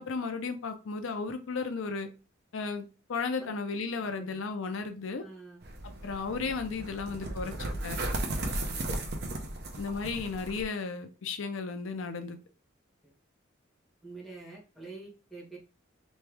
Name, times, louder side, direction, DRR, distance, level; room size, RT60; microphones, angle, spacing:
voice 1, 0.0-2.1 2.5-5.2 6.0-8.0 9.8-12.4, left 4 dB, 80° left, 7 dB, 0.5 m, -34 dB
voice 2, 3.9-4.4 5.2-5.6 13.0-13.1 14.0-15.6, right 3 dB, ahead, -4 dB, 1.5 m, -47 dB
sound 1, 5.6-10.6, right 1 dB, 55° right, 0.7 m, -35 dB
3.5 x 3.2 x 3.3 m, 0.34 s
head